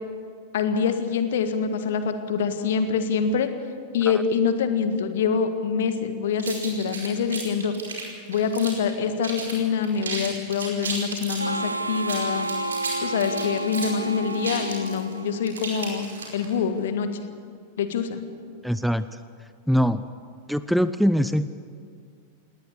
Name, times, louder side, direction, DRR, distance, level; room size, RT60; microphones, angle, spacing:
voice 1, 0.5-3.5 3.9-7.7 8.3-12.5 13.0-17.1 17.8-18.2, left 6 dB, 60° left, 8 dB, 1.7 m, -25 dB
sound 1, 6.4-8.9 9.2-9.6 9.8-11.5 12.0-16.5, right 4 dB, 70° right, 4.9 m, -34 dB
Harmonica, 11.4-15.8, right 2 dB, 85° right, 1.0 m, -31 dB
voice 2, 18.6-19.2 19.7-20.0 20.5-21.5, equal, ahead, 13 dB, 0.6 m, -22 dB
19.5 x 19.0 x 8.3 m, 2.1 s
figure-of-eight pair, 90°, 0 cm